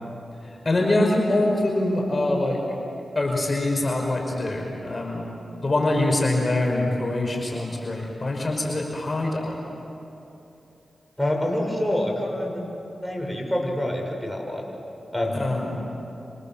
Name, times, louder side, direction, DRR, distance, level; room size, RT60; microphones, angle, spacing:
voice 1, 0.4-2.6 3.2-5.3 5.6-9.6 15.3-15.8, left 2 dB, 45° left, 1 dB, 5.6 m, -24 dB
voice 2, 11.2-12.6 13.0-14.6 15.1-15.4, left 1 dB, 5° left, 0 dB, 7.3 m, -26 dB
30.0 x 26.0 x 7.7 m, 2.8 s
cardioid pair, 45°, 0 cm